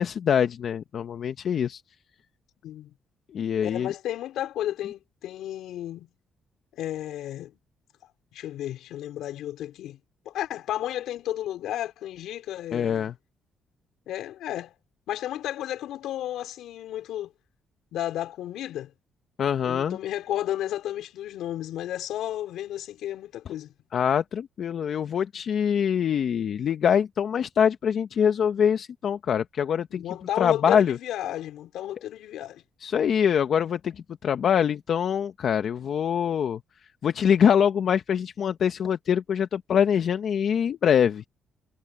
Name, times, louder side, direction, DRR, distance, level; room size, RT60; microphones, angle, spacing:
voice 1, 0.0-1.8 3.3-3.9 12.7-13.1 19.4-20.0 23.9-30.0 30.4-31.0 32.8-33.9 34.2-36.6 37.0-41.3, left 8 dB, 60° left, 1.0 m, -24 dB
voice 2, 2.6-2.9 3.6-6.1 6.7-7.6 8.3-10.0 10.2-13.1 14.1-14.7 15.1-17.3 17.9-18.9 19.6-23.7 29.9-32.6, left 12 dB, 85° left, 4.8 m, -33 dB
cardioid pair, 90°, 0 cm